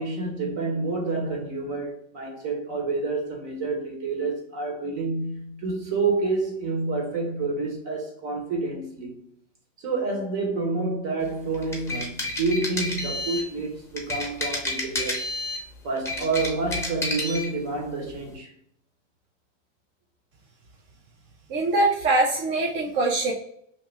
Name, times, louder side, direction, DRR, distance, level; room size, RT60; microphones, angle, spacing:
voice 1, 0.0-9.1 9.8-15.2 15.8-18.5, right 3 dB, 55° right, 1.3 m, -28 dB
sound 1, 11.5-13.5 14.0-15.6 16.0-17.5, left 2 dB, 5° left, 0.7 m, -30 dB
voice 2, 21.5-23.3, right 2 dB, 30° right, 0.5 m, -23 dB
2.9 x 2.2 x 3.3 m
hypercardioid pair, 115°, 38 cm